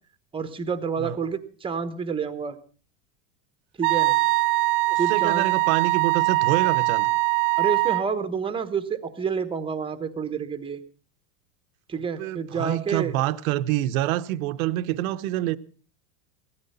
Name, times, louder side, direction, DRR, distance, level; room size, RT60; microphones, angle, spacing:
voice 1, 0.3-2.6 3.8-4.2 5.0-5.5 7.6-10.8 11.9-13.1, right 6 dB, 10° right, 1.0 m, -29 dB
Wind instrument woodwind instrument, 3.8-8.1, right 24 dB, 50° right, 0.7 m, -22 dB
voice 2, 4.9-7.1 12.2-15.6, right 15 dB, 75° right, 0.9 m, -26 dB
16.5 x 13.0 x 5.5 m
supercardioid pair, 155°, 42 cm